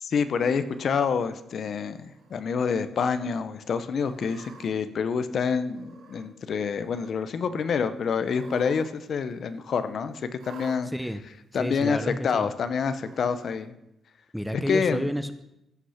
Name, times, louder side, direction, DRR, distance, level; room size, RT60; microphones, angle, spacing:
voice 1, 0.0-10.9 11.5-12.0 12.2-13.7 14.7-15.1, left 6 dB, 50° left, 12 dB, 0.7 m, -27 dB
Cat, 0.6-1.2 1.9-2.4 2.8-2.9 3.9-4.7 5.7-6.3 6.6-7.2 8.2-8.9 9.2-9.3 10.4-10.8 11.7-11.8 12.9-13.5, right 4 dB, 90° right, 2.1 m, -49 dB
voice 2, 11.6-12.5 14.3-15.4, equal, ahead, 10 dB, 0.5 m, -30 dB
15.5 x 5.9 x 5.8 m, 0.84 s
cardioid pair, 155°, 0 cm